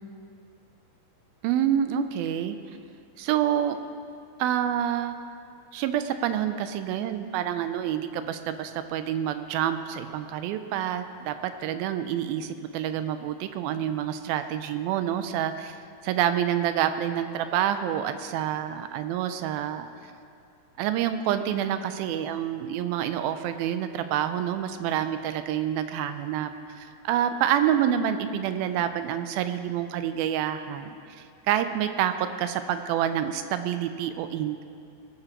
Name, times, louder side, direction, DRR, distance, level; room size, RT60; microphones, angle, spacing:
voice 1, 1.4-2.6 3.2-3.8 4.4-5.2 5.7-15.8 16.0-19.9 20.8-26.5 26.8-32.1 32.4-34.6, right 10 dB, 85° right, 9 dB, 2.4 m, -27 dB
19.5 x 12.0 x 3.0 m, 2.4 s
omnidirectional pair, 4.3 m